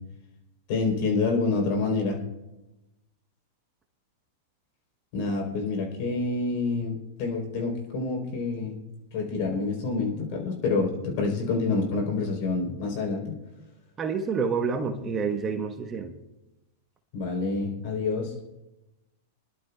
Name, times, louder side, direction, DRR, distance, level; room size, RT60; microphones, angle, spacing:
voice 1, 0.7-2.2 5.1-8.8 9.1-13.4 17.1-18.3, left 3 dB, 55° left, 1 dB, 3.7 m, -27 dB
voice 2, 14.0-16.1, right 5 dB, 25° right, 5 dB, 1.1 m, -28 dB
24.5 x 11.5 x 2.3 m, 0.98 s
hypercardioid pair, 115°, 0 cm